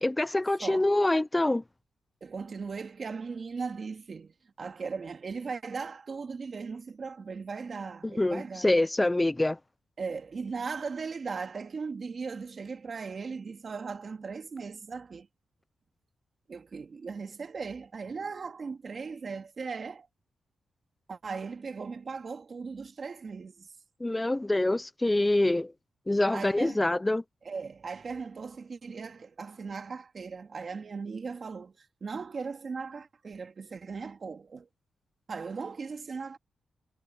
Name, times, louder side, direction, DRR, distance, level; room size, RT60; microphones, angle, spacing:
voice 1, 0.0-1.6 8.0-9.6 24.0-25.7 26.1-27.2, left 2 dB, 15° left, 0.4 m, -25 dB
voice 2, 2.2-8.7 10.0-15.3 16.5-20.1 21.1-23.7 26.3-26.8 27.4-34.7 35.3-36.4, right 5 dB, 45° right, 2.2 m, -38 dB
cardioid pair, 105°, 0 cm